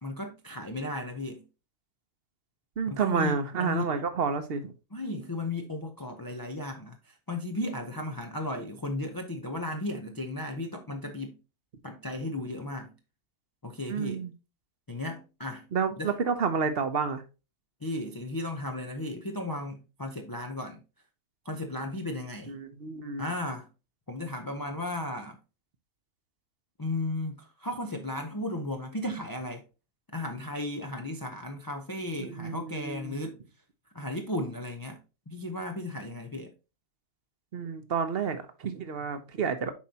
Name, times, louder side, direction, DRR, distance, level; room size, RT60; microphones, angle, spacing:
voice 1, 0.0-1.4 2.9-3.8 4.9-11.4 11.8-12.9 13.6-14.3 14.9-15.7 16.0-16.1 17.8-20.8 21.4-22.5 23.2-23.7 24.1-25.4 26.8-29.6 30.1-33.4 33.9-35.0 35.3-36.5, left 2 dB, 25° left, 0.4 m, -35 dB
voice 2, 2.8-4.7 13.9-14.3 15.7-17.2 22.5-23.2 32.2-33.3 37.5-39.7, right 5 dB, 50° right, 1.0 m, -30 dB
7.4 x 5.0 x 2.8 m
omnidirectional pair, 1.5 m